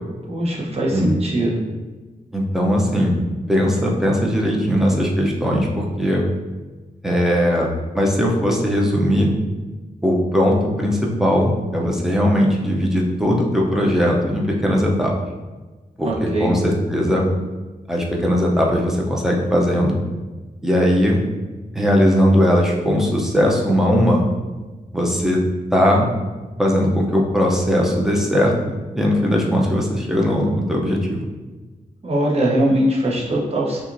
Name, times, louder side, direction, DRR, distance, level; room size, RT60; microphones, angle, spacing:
voice 1, 0.3-1.6 16.0-16.6 32.0-33.8, right 1 dB, 45° right, -3 dB, 0.9 m, -21 dB
voice 2, 2.3-3.1 3.5-6.2 7.0-7.7 7.9-9.3 10.0-15.1 16.0-17.3 17.9-19.9 20.6-21.2 21.7-24.2 24.9-25.4 25.7-26.1 26.6-31.2, equal, 5° right, -2 dB, 0.6 m, -19 dB
5.8 x 2.5 x 2.6 m, 1.3 s
wide cardioid pair, 135°, 15 cm